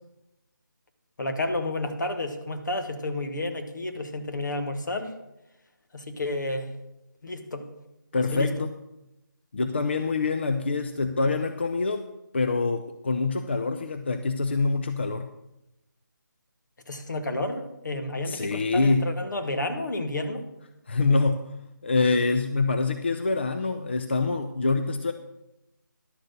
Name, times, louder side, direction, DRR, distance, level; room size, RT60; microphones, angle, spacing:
voice 1, 1.2-5.1 5.9-6.7 7.2-7.7 8.3-8.5 16.9-20.4, left 2 dB, 65° left, 6 dB, 1.5 m, -31 dB
voice 2, 8.1-8.7 9.5-12.1 12.3-15.3 18.2-19.1 20.9-21.5 21.8-25.1, left 3 dB, 35° left, 9 dB, 0.4 m, -25 dB
11.5 x 6.6 x 6.5 m, 0.92 s
figure-of-eight pair, 170°, 11 cm